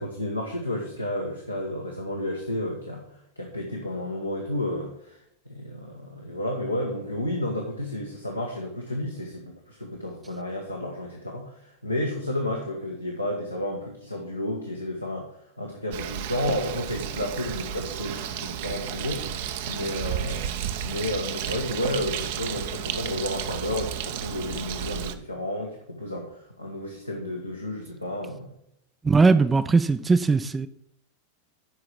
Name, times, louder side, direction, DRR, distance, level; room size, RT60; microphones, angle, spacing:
voice 1, 0.0-3.0 3.4-5.2 5.5-15.3 15.6-19.3 19.7-28.5, left 1 dB, 85° left, 0 dB, 1.3 m, -31 dB
Bird, 15.9-25.1, right 9 dB, 50° right, 0.7 m, -32 dB
voice 2, 29.0-30.7, right 4 dB, 15° right, 10 dB, 0.4 m, -19 dB
12.0 x 4.9 x 5.8 m, 0.76 s
figure-of-eight pair, 90°, 0 cm